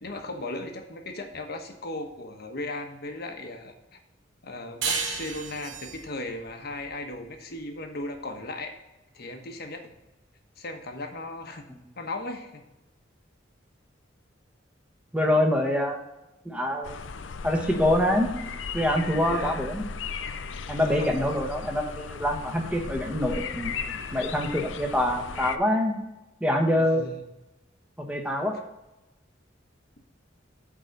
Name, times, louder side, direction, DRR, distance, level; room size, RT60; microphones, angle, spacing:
voice 1, 0.0-4.0 4.4-8.7 9.1-9.9 10.6-11.7 12.0-12.6 17.6-17.8 19.3-19.6 20.8-21.1 26.8-27.2, left 2 dB, 55° left, 4 dB, 1.1 m, -37 dB
sound 1, 4.8-8.0, right 6 dB, 80° right, 1.1 m, -34 dB
voice 2, 15.1-16.0 16.4-17.0 17.4-18.3 18.7-19.8 20.7-23.8 24.1-26.0 26.4-27.1 28.0-28.6, left 1 dB, 5° right, 2 dB, 1.1 m, -25 dB
sound 2, 16.8-25.6, left 5 dB, 75° left, 0.5 m, -36 dB
8.6 x 4.0 x 6.6 m, 0.95 s
head